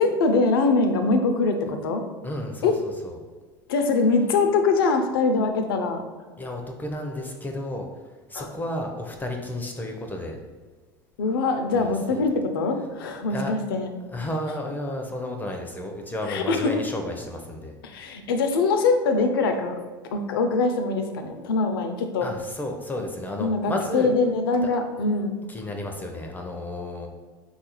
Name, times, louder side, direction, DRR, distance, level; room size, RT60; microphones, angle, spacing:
voice 1, 0.0-2.0 2.6-2.7 3.7-6.0 8.3-8.5 11.2-13.9 16.3-16.8 17.8-19.7 20.1-22.3 23.4-25.3, left 3 dB, 85° left, 6 dB, 0.4 m, -23 dB
voice 2, 2.2-3.2 6.4-7.9 8.3-10.4 11.7-11.8 12.1-12.2 13.3-13.5 14.1-18.2 22.2-24.1 25.5-27.1, left 1 dB, 15° left, 3 dB, 0.4 m, -32 dB
3.7 x 2.4 x 2.9 m, 1.4 s
hypercardioid pair, 90°, 12 cm